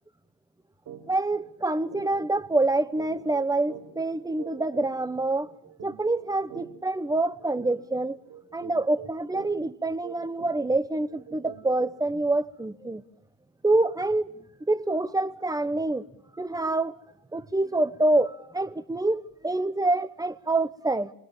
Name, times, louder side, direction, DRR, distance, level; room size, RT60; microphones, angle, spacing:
sound 1, 0.9-1.0 1.4-1.5 1.9-12.1, right 8 dB, 45° right, 6.1 m, -46 dB
voice 1, 1.1-5.5 5.8-8.2 8.5-13.0 13.6-14.4 14.7-16.1 16.4-16.9 17.3-21.1, right 2 dB, 10° right, 1.2 m, -26 dB
26.5 x 21.0 x 7.4 m
supercardioid pair, 90°, 45 cm